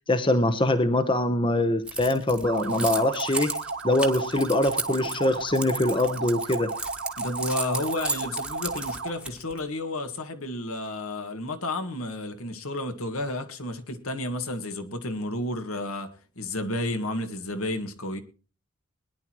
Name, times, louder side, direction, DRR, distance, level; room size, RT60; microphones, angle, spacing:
voice 1, 0.1-3.5 3.8-6.7, left 1 dB, 20° left, 0.9 m, -23 dB
Keys jangling, 1.9-9.6, right 2 dB, 5° right, 1.3 m, -34 dB
sound 1, 2.4-9.2, right 3 dB, 50° right, 1.2 m, -34 dB
voice 2, 7.2-16.1 16.4-18.2, left 1 dB, 70° left, 1.8 m, -31 dB
21.5 x 10.5 x 3.0 m
head